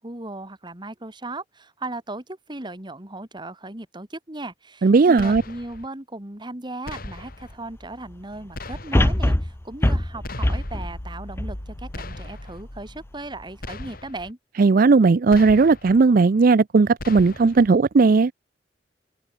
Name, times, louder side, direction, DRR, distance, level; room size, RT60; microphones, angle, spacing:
voice 1, 0.0-14.4, right 2 dB, 25° right, 2.1 m, -37 dB
voice 2, 4.8-5.4 14.6-18.3, right 4 dB, 50° right, 0.4 m, -16 dB
sound 1, 5.2-5.9 6.8-7.5 8.5-9.2 10.2-10.9 11.9-12.6 13.6-14.3 15.3-16.0 17.0-17.7, left 2 dB, 55° left, 2.9 m, -38 dB
sound 2, 7.2-7.3 8.9-12.2 12.7-12.8, left 1 dB, 15° left, 0.7 m, -23 dB
sound 3, 10.3-13.7, left 1 dB, 75° left, 3.7 m, -39 dB
head